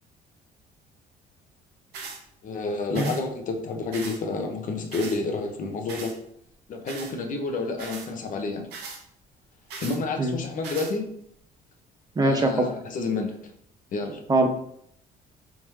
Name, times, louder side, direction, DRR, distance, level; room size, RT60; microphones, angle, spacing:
sound 1, 1.9-2.2 2.9-3.2 3.9-4.2 4.9-5.2 5.9-6.1 6.9-7.1 7.8-8.1 8.7-9.0 9.7-10.0 10.6-10.9, right 4 dB, 80° right, 1.0 m, -38 dB
voice 1, 2.4-6.2 6.7-8.6 9.8-11.0 12.2-13.3 13.9-14.2, left 3 dB, 50° left, 3 dB, 0.8 m, -29 dB
voice 2, 12.2-12.7 14.3-14.5, right 2 dB, 25° right, 5 dB, 0.6 m, -22 dB
4.2 x 3.6 x 3.1 m, 0.69 s
cardioid pair, 110°, 17 cm